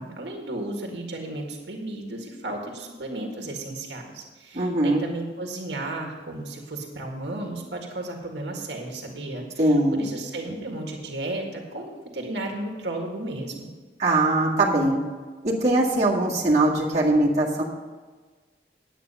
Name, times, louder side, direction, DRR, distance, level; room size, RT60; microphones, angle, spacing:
voice 1, 0.0-13.7, right 2 dB, 85° right, 1 dB, 1.8 m, -34 dB
voice 2, 4.5-5.0 9.6-10.1 14.0-15.0 15.4-17.6, right 2 dB, 40° right, -5 dB, 2.2 m, -21 dB
10.0 x 8.8 x 5.5 m, 1.4 s
head